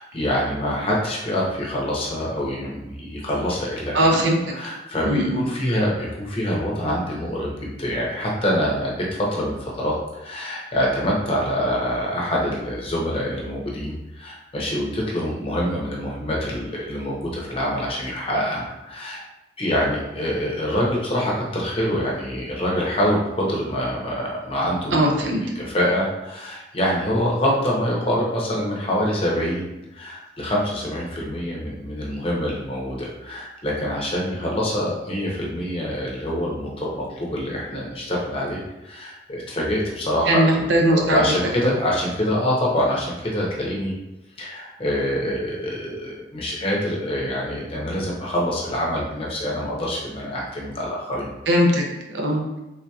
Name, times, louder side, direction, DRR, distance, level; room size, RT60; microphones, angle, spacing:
voice 1, 0.0-4.2 4.5-8.9 9.3-19.2 19.6-43.9 44.4-51.3, equal, 30° left, -3 dB, 0.7 m, -25 dB
voice 2, 3.9-4.4 5.0-5.4 24.9-25.4 40.3-41.2 41.6-41.7 51.5-52.6, right 1 dB, 90° right, 0 dB, 0.6 m, -20 dB
3.6 x 2.7 x 2.3 m, 0.98 s
head